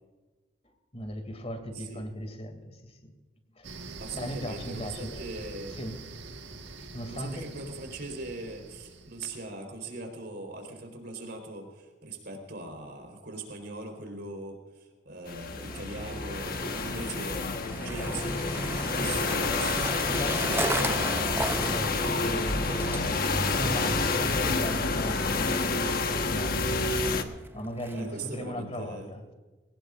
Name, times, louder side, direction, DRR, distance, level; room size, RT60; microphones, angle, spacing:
voice 1, 0.6-3.1 3.6-3.8 4.1-5.3 5.8-6.0 6.9-7.5 18.9-19.1 19.8-23.1 23.5-26.7 27.5-29.3, equal, 35° left, 7 dB, 2.5 m, -38 dB
voice 2, 1.7-2.0 4.0-5.8 7.1-17.4 17.8-20.3 27.9-29.1, right 2 dB, 65° right, 3 dB, 4.1 m, -40 dB
sound 1, 3.6-9.4, right 3 dB, 80° right, 1.5 m, -44 dB
sound 2, 15.3-27.2, left 3 dB, 55° left, 1.3 m, -28 dB
Skateboard, 15.7-28.4, right 2 dB, 10° right, 0.5 m, -37 dB
21.5 x 18.0 x 2.5 m, 1.3 s
head